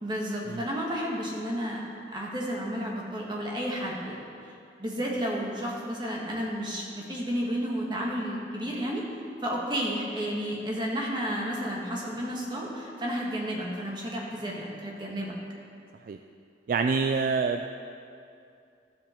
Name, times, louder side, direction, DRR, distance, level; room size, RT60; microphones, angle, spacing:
voice 1, 0.0-4.2 4.8-9.0 9.4-15.3, equal, 25° right, -2 dB, 1.5 m, -32 dB
voice 2, 16.7-17.7, right 5 dB, 50° right, 6 dB, 0.3 m, -26 dB
13.0 x 7.3 x 4.4 m, 2.5 s
head